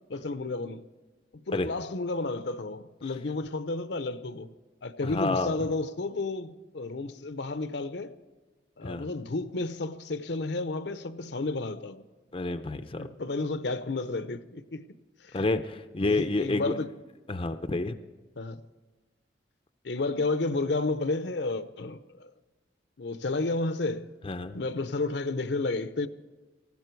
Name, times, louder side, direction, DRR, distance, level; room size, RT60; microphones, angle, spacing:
voice 1, 0.1-0.8 1.3-4.5 4.8-8.1 8.8-12.0 13.0-14.9 15.2-15.4 16.1-16.9 18.4-18.6 19.8-22.3 23.0-24.1 24.5-26.1, left 3 dB, 65° left, 0.7 m, -31 dB
voice 2, 5.0-5.5 8.8-9.1 12.3-13.1 15.3-16.8 17.3-18.0 24.2-24.6, left 2 dB, 30° left, 0.6 m, -29 dB
19.0 x 15.0 x 4.6 m
head